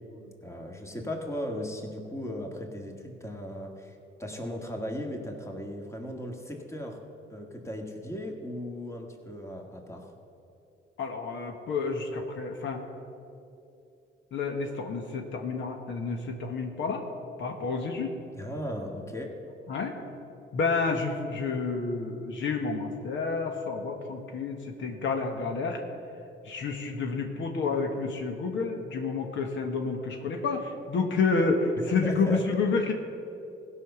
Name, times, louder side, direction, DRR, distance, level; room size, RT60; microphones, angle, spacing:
voice 1, 0.4-7.0 7.3-10.1 18.3-19.3 31.9-32.4, equal, 15° left, 2 dB, 1.8 m, -37 dB
voice 2, 11.0-12.8 14.3-17.0 17.4-18.1 19.7-19.9 20.5-25.8 26.4-32.9, left 4 dB, 70° left, 3 dB, 1.3 m, -29 dB
16.0 x 5.6 x 6.9 m, 2.7 s
cardioid pair, 90°, 20 cm